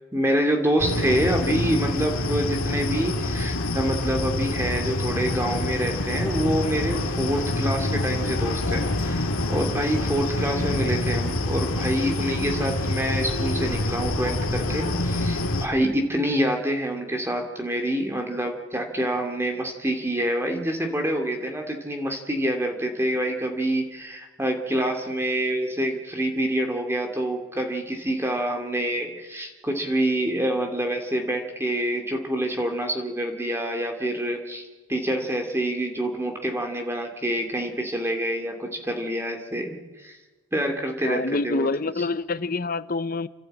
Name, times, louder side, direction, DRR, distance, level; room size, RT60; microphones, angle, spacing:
voice 1, 0.1-40.2 40.5-41.7 42.0-42.1, right 1 dB, 10° right, 2.4 m, -27 dB
sound 1, 0.8-15.7, left 2 dB, 85° left, 2.2 m, -26 dB
voice 2, 41.1-43.3, left 3 dB, 40° left, 0.7 m, -26 dB
30.0 x 12.0 x 8.8 m
head